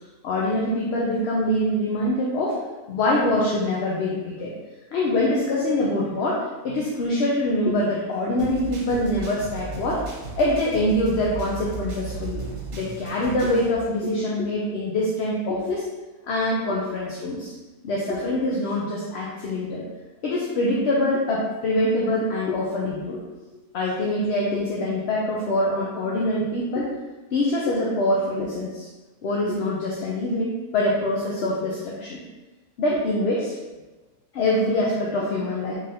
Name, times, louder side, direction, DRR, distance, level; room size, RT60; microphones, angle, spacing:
voice 1, 0.2-2.6 2.9-4.5 4.9-10.0 10.4-12.4 12.7-15.9 16.3-17.5 17.8-19.8 20.2-23.2 23.7-26.9 27.3-28.9 29.2-32.2 32.8-33.6 34.3-35.7, left 1 dB, 60° left, -4 dB, 0.7 m, -24 dB
sound 1, 8.4-13.7, right 4 dB, 60° right, 1.1 m, -35 dB
3.8 x 3.3 x 2.7 m, 1.2 s
omnidirectional pair, 1.5 m